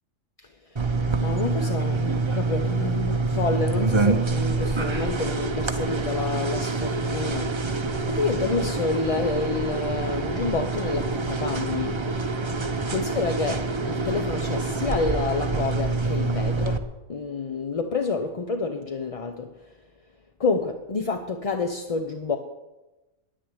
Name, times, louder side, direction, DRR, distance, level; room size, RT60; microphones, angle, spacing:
voice 1, 0.4-12.0 12.9-19.7 20.4-22.4, left 4 dB, 35° left, 0.7 m, -29 dB
sound 1, 0.8-16.8, right 3 dB, 25° right, 0.7 m, -26 dB
10.0 x 9.8 x 9.6 m
omnidirectional pair, 1.3 m